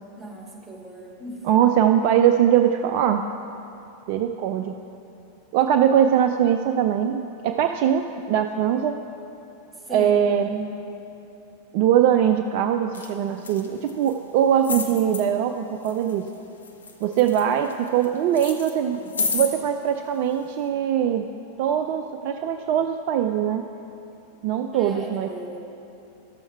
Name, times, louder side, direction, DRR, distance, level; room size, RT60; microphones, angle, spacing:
voice 1, 0.2-1.4 9.8-10.2 10.5-10.7 24.7-25.6, right 2 dB, 5° right, -2 dB, 1.9 m, -36 dB
voice 2, 1.4-3.3 4.1-4.8 5.5-9.0 9.9-10.6 11.7-16.3 17.0-19.0 19.3-21.3 21.6-23.7 24.4-25.3, right 9 dB, 45° right, 6 dB, 0.4 m, -21 dB
sound 1, 12.9-13.1 13.4-14.1 14.6-15.2 15.8-16.3 16.6-18.0 18.3-19.5 20.3-20.4, left 4 dB, 70° left, 0.8 m, -30 dB
12.5 x 7.1 x 4.4 m, 2.9 s
figure-of-eight pair, 90°, 0 cm